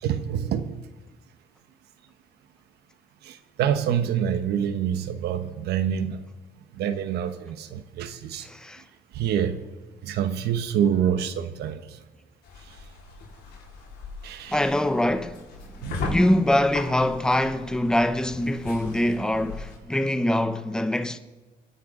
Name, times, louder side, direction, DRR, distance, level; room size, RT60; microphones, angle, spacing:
voice 1, 0.0-0.7 3.2-6.2 6.7-8.5 9.1-9.6 10.0-12.0 14.2-14.6 15.8-16.2, right 9 dB, 75° right, 1.1 m, -26 dB
voice 2, 8.4-8.8 14.5-15.4 15.8-21.2, left 1 dB, 5° left, 0.8 m, -24 dB
sound 1, 12.4-19.8, left 4 dB, 85° left, 4.3 m, -38 dB
27.0 x 10.5 x 3.8 m
cardioid pair, 110°, 17 cm